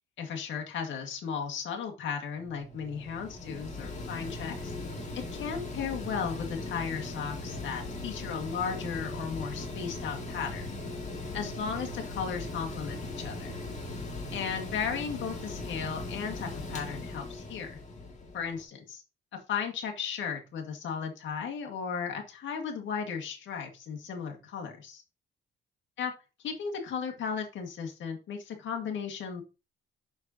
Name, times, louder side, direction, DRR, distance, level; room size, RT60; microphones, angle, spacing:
voice 1, 0.2-4.7 5.3-10.7 11.3-13.6 14.3-17.8 18.3-19.0 19.5-25.0 26.0-26.1 26.4-29.4, left 6 dB, 70° left, 3 dB, 1.8 m, -35 dB
Mechanical fan, 2.4-18.6, left 2 dB, 35° left, 2.1 m, -39 dB
6.5 x 6.4 x 2.8 m, 0.30 s
cardioid pair, 90°, 20 cm